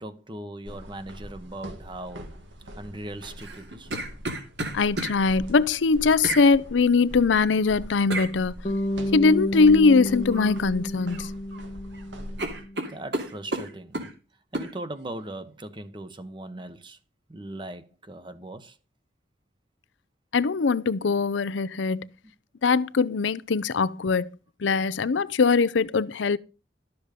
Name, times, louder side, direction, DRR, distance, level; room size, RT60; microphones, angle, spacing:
voice 1, 0.0-2.3 2.8-3.9 12.9-14.1 14.5-17.0 17.3-18.8, right 1 dB, 25° right, 1.0 m, -39 dB
sound 1, 0.7-12.6, equal, 90° right, 2.1 m, -43 dB
sound 2, 3.4-5.2 6.2-6.5 8.1-8.3 10.3-10.6 10.9-11.6 11.9-12.0 12.4-14.1 14.5-14.7, right 2 dB, 65° right, 2.5 m, -32 dB
voice 2, 4.7-8.5 9.1-11.3 20.3-22.1 22.6-24.3 24.6-26.4, left 4 dB, 90° left, 0.6 m, -21 dB
Bass guitar, 8.6-12.9, left 1 dB, 35° left, 1.0 m, -31 dB
12.0 x 7.1 x 5.1 m
head